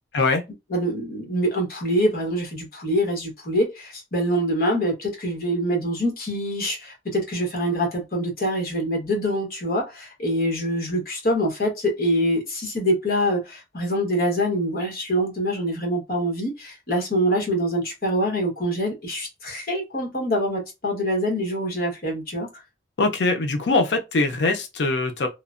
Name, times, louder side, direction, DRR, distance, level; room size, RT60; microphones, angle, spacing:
voice 1, 0.7-22.5, equal, 55° left, 1.2 m, -25 dB
voice 2, 23.0-25.3, left 3 dB, 80° left, 0.5 m, -22 dB
3.0 x 2.0 x 2.5 m
head